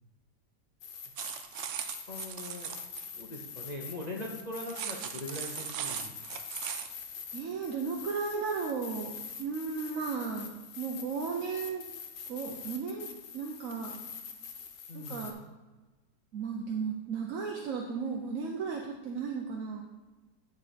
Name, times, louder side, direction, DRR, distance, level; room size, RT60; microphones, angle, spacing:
sound 1, 0.8-15.3, left 6 dB, 80° left, 1.4 m, -45 dB
sound 2, 1.2-3.1 4.6-6.9, right 9 dB, 75° right, 0.6 m, -38 dB
voice 1, 2.1-2.7 3.1-6.4 14.9-15.3, left 1 dB, 55° left, -1 dB, 0.4 m, -41 dB
voice 2, 7.3-11.8 12.3-13.1 13.3-14.0 14.9-15.4 16.3-19.8, right 5 dB, 60° right, 0 dB, 1.0 m, -35 dB
9.7 x 4.0 x 5.0 m, 1.2 s
omnidirectional pair, 1.9 m